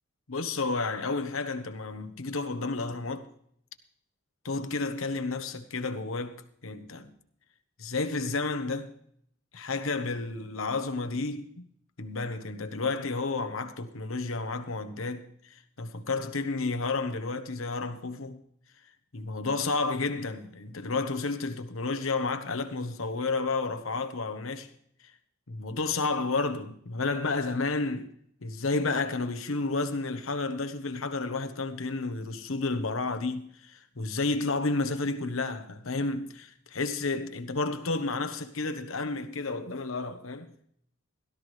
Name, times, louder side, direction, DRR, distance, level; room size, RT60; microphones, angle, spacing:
voice 1, 0.3-3.3 4.4-7.1 7.8-8.9 9.5-11.7 12.0-18.4 19.1-24.7 25.5-28.1 28.4-40.5, left 3 dB, 85° left, 1.1 m, -31 dB
17.0 x 13.0 x 3.3 m
head